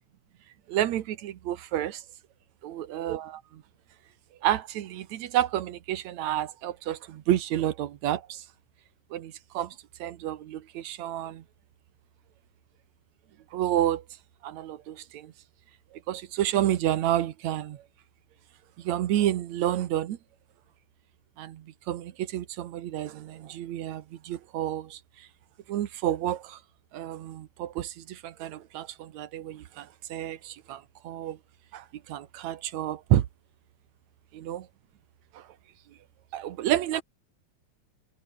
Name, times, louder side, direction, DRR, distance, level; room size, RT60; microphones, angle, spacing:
voice 1, 0.7-2.0 2.6-3.6 4.4-8.4 9.1-11.4 13.5-14.0 14.4-15.3 16.1-17.8 18.8-20.2 21.4-25.0 25.7-26.6 26.9-31.4 31.7-33.3 34.3-34.7 35.3-35.4 36.3-37.0, right 12 dB, 70° right, 2.4 m, -30 dB
omnidirectional pair, 3.4 m